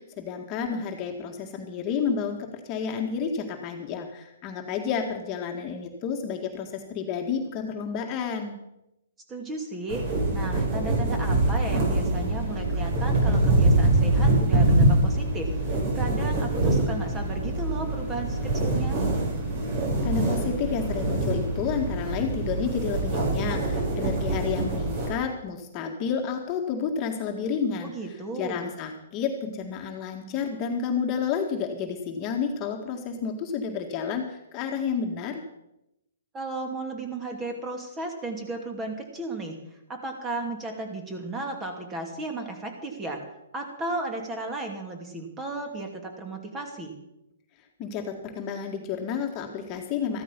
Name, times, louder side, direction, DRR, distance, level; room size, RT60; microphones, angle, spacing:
voice 1, 0.0-8.6 20.0-27.9 28.4-35.4 47.8-50.2, left 6 dB, 30° left, 2 dB, 2.0 m, -30 dB
voice 2, 9.3-10.0 10.3-19.0 27.8-28.7 36.3-39.6 39.9-43.2 43.5-47.0, right 2 dB, 15° right, 4 dB, 2.8 m, -34 dB
sound 1, 9.9-25.1, right 2 dB, 40° right, 6.7 m, -24 dB
14.0 x 13.5 x 5.4 m, 0.88 s
hypercardioid pair, 145°, 0 cm